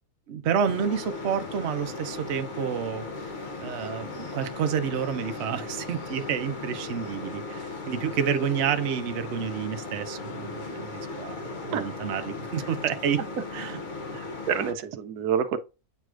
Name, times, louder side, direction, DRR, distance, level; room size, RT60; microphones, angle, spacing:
voice 1, 0.3-3.0 3.6-13.2 13.5-13.8, right 7 dB, 55° right, 0.9 m, -29 dB
sound 1, 0.6-14.7, left 3 dB, 40° left, 0.7 m, -37 dB
voice 2, 14.1-15.6, right 8 dB, 85° right, 1.2 m, -28 dB
8.3 x 4.7 x 2.5 m
omnidirectional pair, 1.6 m